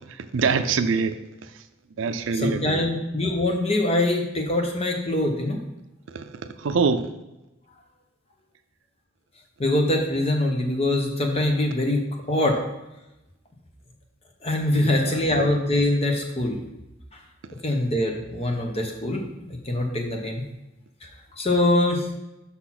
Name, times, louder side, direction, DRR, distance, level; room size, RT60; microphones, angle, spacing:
voice 1, 0.2-1.2 2.0-2.8 6.1-6.3 6.6-7.1 14.7-15.2, right 5 dB, 70° right, 10 dB, 0.4 m, -24 dB
voice 2, 2.3-5.6 9.6-12.0 12.3-12.6 14.4-16.6 17.6-19.2 19.5-20.4 21.4-22.1, left 1 dB, 30° left, 2 dB, 1.0 m, -23 dB
5.7 x 4.1 x 5.9 m, 0.96 s
head